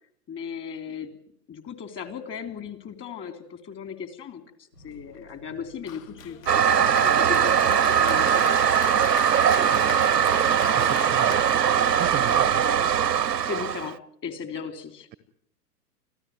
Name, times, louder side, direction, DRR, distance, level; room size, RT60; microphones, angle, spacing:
voice 1, 0.3-1.1 1.5-4.4 4.8-8.4 12.4-12.8 13.4-14.0 14.2-15.1, left 7 dB, 25° left, 9 dB, 3.2 m, -36 dB
sound 1, 4.7-8.5, equal, 80° left, 4.4 m, -53 dB
Applause, 5.9-13.0, left 9 dB, 55° left, 0.9 m, -37 dB
Toilet flush, 6.5-13.9, right 8 dB, 80° right, 0.8 m, -21 dB
voice 2, 9.4-9.8 10.6-11.5 12.0-12.6, right 13 dB, 20° right, 16 dB, 0.8 m, -34 dB
26.0 x 15.5 x 9.3 m, 0.67 s
figure-of-eight pair, 115°, 48 cm